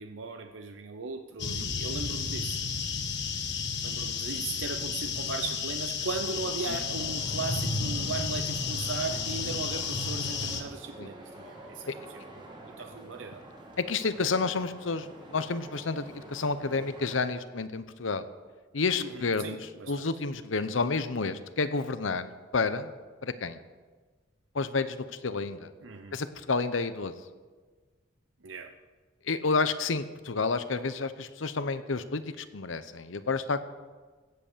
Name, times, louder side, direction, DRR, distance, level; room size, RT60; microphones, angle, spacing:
voice 1, 0.0-2.6 3.8-11.9 12.3-13.4 19.0-20.0 25.8-26.2 28.4-28.7, right 4 dB, 80° right, 6 dB, 0.8 m, -38 dB
sound 1, 1.4-10.6, left 5 dB, 65° left, 1.5 m, -32 dB
sound 2, 6.1-17.2, right 1 dB, 25° right, 2.2 m, -48 dB
voice 2, 13.8-18.3 18.7-19.6 19.9-22.9 23.2-23.6 24.5-25.7 26.1-27.1 29.2-33.7, left 4 dB, 85° left, 12 dB, 0.8 m, -30 dB
16.0 x 8.0 x 6.8 m, 1.4 s
head